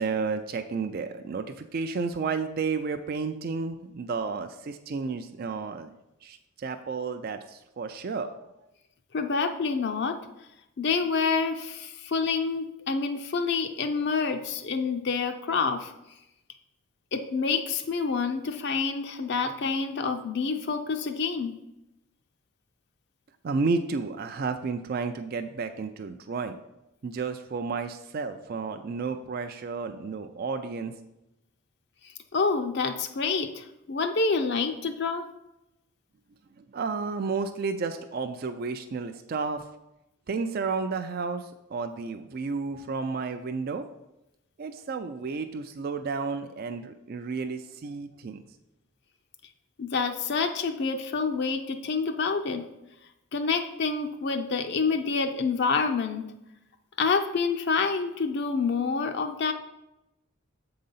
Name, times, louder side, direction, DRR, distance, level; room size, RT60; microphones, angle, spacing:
voice 1, 0.0-5.9 6.2-8.4 23.4-26.6 27.0-30.9 36.7-39.6 40.3-43.8 44.6-48.4, right 4 dB, 45° right, 8 dB, 0.4 m, -32 dB
voice 2, 9.1-10.2 10.8-15.9 17.1-21.5 32.0-35.2 49.8-52.6 53.3-56.2 57.0-59.5, left 4 dB, 55° left, 6 dB, 0.5 m, -27 dB
7.5 x 3.9 x 5.5 m, 0.90 s
head